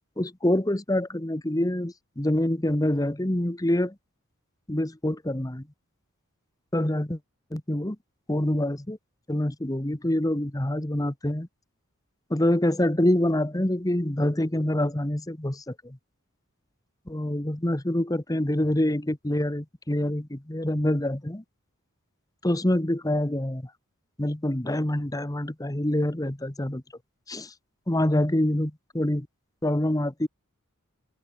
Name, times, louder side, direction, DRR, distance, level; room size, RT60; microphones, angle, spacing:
voice 1, 0.2-3.9 4.7-5.6 6.7-7.2 7.5-8.0 8.3-9.0 9.3-11.5 12.3-16.0 17.1-21.4 22.4-23.6 24.2-26.8 27.3-27.5 27.9-29.3 29.6-30.3, left 1 dB, 15° left, 1.1 m, -26 dB
open air
head